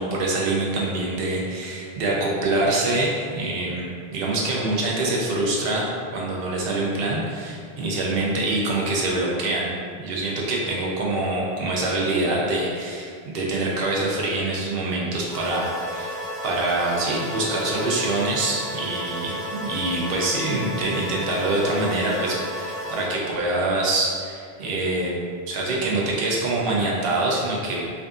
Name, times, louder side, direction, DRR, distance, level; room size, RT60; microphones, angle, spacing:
voice 1, 0.0-5.8 6.1-16.1 16.4-25.2 25.5-27.8, right 2 dB, 70° right, -3 dB, 0.8 m, -25 dB
sound 1, 15.3-23.1, equal, 85° right, 1.4 m, -32 dB
2.6 x 2.4 x 2.3 m, 2.1 s
omnidirectional pair, 1.0 m